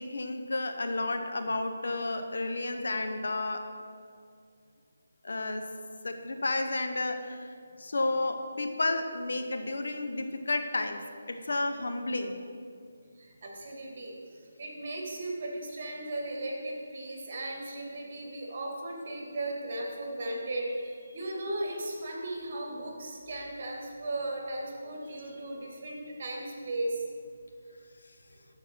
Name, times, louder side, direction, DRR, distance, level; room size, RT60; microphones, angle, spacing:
voice 1, 0.0-3.7 5.2-5.6 6.0-11.0 11.3-12.4, left 2 dB, 75° left, 6 dB, 0.8 m, -31 dB
voice 2, 13.2-27.1, right 1 dB, 45° right, 0 dB, 1.9 m, -36 dB
13.0 x 4.5 x 4.3 m, 2.2 s
figure-of-eight pair, 160°, 0 cm